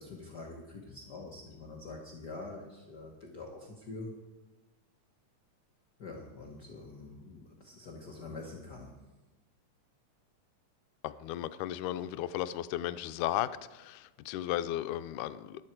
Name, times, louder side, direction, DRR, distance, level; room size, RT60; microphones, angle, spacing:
voice 1, 0.0-4.1 6.0-9.0, left 3 dB, 60° left, -1 dB, 1.0 m, -45 dB
voice 2, 11.0-15.6, left 13 dB, 85° left, 13 dB, 2.0 m, -35 dB
13.5 x 11.0 x 4.5 m, 1.1 s
omnidirectional pair, 3.6 m